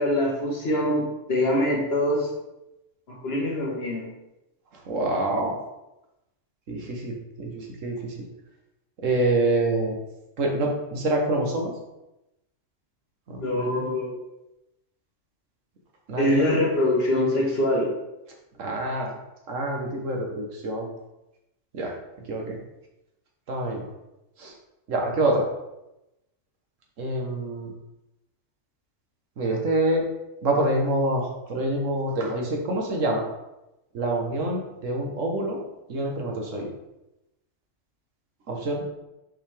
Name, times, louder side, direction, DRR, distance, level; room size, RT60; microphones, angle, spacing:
voice 1, 0.0-2.3 3.1-4.0 13.4-14.2 16.2-17.9, left 1 dB, 55° left, -2 dB, 1.6 m, -24 dB
voice 2, 4.7-5.6 6.7-8.1 9.0-10.0 10.4-11.7 13.3-13.8 16.1-16.5 18.6-19.1 19.5-20.9 21.7-21.9 22.3-22.6 23.5-23.8 24.4-24.5 24.9-25.4 27.0-27.7 29.4-30.0 30.4-33.3 33.9-35.6 35.9-36.7 38.5-38.8, right 1 dB, 85° right, 0 dB, 1.6 m, -26 dB
5.6 x 5.4 x 3.4 m, 0.93 s
omnidirectional pair, 1.3 m